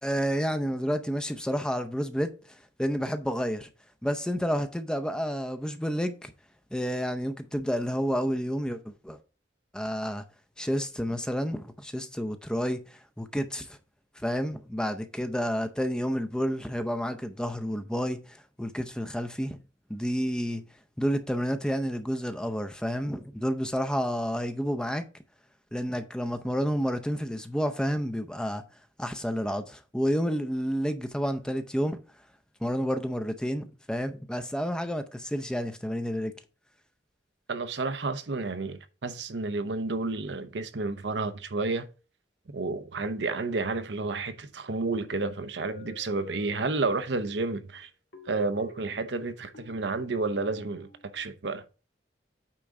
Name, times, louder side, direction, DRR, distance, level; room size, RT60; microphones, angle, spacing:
voice 1, 0.0-3.7 4.0-6.3 6.7-9.2 9.7-10.2 10.6-13.8 14.2-19.6 19.9-20.6 21.0-25.1 25.7-28.6 29.0-32.0 32.6-36.3, equal, 5° left, 0.6 m, -30 dB
voice 2, 37.5-41.9 42.5-47.9 48.3-50.9 51.1-51.6, right 3 dB, 70° right, 0.8 m, -31 dB
sound 1, 45.1-47.3 48.1-51.3, left 1 dB, 65° left, 2.1 m, -50 dB
8.7 x 3.8 x 4.7 m
head